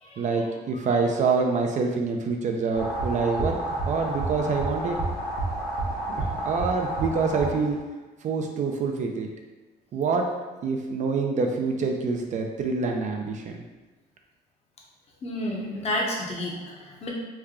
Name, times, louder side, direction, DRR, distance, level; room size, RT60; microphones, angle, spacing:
voice 1, 0.2-3.6 3.9-5.0 6.1-7.8 8.2-9.3 9.9-10.3 10.6-13.6, right 4 dB, 45° right, 3 dB, 0.4 m, -26 dB
sound 1, 2.7-7.8, right 2 dB, 65° left, 1.2 m, -30 dB
voice 2, 15.2-17.1, left 1 dB, 40° left, -2 dB, 0.8 m, -30 dB
3.3 x 2.2 x 3.5 m, 1.2 s
cardioid pair, 110°, 17 cm